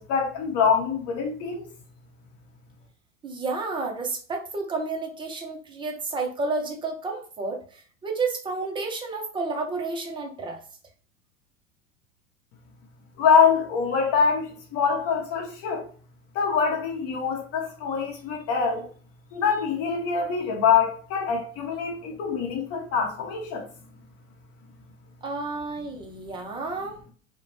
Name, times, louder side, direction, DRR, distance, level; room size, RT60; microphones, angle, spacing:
voice 1, 0.0-1.7 13.2-15.9 16.3-18.9 19.3-23.7, left 6 dB, 35° left, 0.9 m, -24 dB
voice 2, 3.2-10.6 25.2-27.0, right 3 dB, 15° right, 0.5 m, -31 dB
2.4 x 2.1 x 3.1 m
figure-of-eight pair, 85°, 39 cm